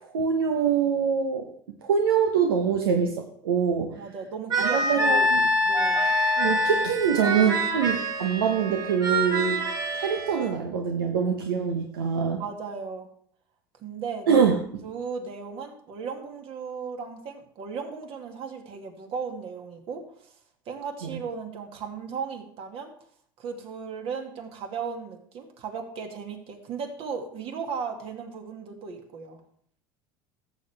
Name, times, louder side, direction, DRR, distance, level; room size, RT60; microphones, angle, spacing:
voice 1, 0.0-1.5 1.8-4.0 4.6-5.4 6.4-9.6 9.9-12.4 14.3-14.6 21.0-21.2, right 6 dB, 90° right, 3 dB, 1.0 m, -24 dB
voice 2, 4.0-5.3 5.6-6.1 12.4-13.1 13.8-14.4 14.8-20.3 20.7-22.9 23.4-29.4, right 5 dB, 55° right, 4 dB, 2.1 m, -36 dB
sound 1, 4.5-10.5, equal, 35° right, 3.1 m, -25 dB
14.5 x 7.4 x 3.4 m, 0.64 s
hypercardioid pair, 90°, 12 cm